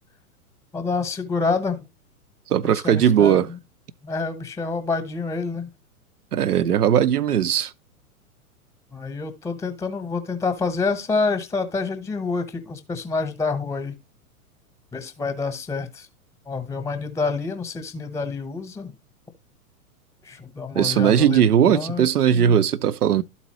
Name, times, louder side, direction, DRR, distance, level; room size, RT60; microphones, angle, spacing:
voice 1, 0.7-1.8 2.6-3.6 4.0-5.7 8.9-13.9 14.9-16.1 16.5-18.9 20.2-22.5, left 4 dB, 5° left, 0.9 m, -27 dB
voice 2, 2.5-3.5 6.3-7.7 20.7-23.2, right 9 dB, 85° right, 0.6 m, -18 dB
12.5 x 4.2 x 2.9 m
figure-of-eight pair, 105°, 45 cm